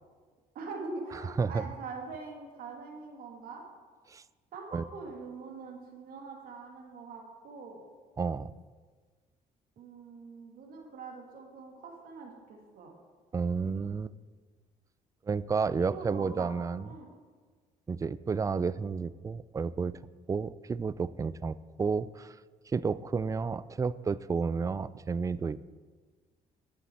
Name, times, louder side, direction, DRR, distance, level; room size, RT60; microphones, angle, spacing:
voice 1, 0.5-3.6 4.5-7.8 9.8-12.9 15.8-16.5 16.8-17.1, right 4 dB, 70° right, 1 dB, 2.2 m, -43 dB
voice 2, 8.2-8.5 13.3-14.1 15.3-16.9 17.9-19.9 20.3-22.3 22.7-25.6, right 5 dB, 20° right, 18 dB, 0.3 m, -31 dB
11.0 x 8.1 x 4.4 m, 1.5 s
cardioid pair, 80°, 16 cm